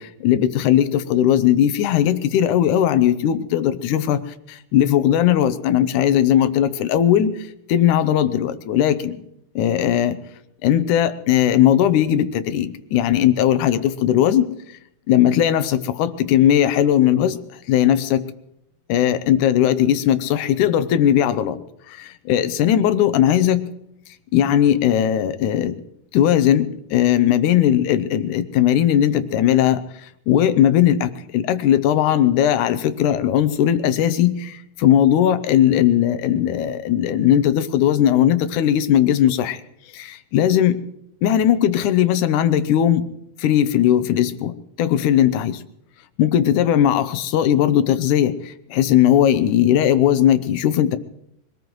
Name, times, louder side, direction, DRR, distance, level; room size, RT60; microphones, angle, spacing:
voice 1, 0.0-9.3 9.6-10.2 10.6-14.5 15.1-17.4 17.7-18.3 18.9-21.6 21.9-23.6 24.3-25.7 26.1-29.8 30.3-39.6 39.9-40.8 41.2-43.0 43.4-45.6 46.2-51.0, left 10 dB, 80° left, 12 dB, 2.3 m, -18 dB
24.0 x 18.5 x 3.1 m, 0.77 s
omnidirectional pair, 3.5 m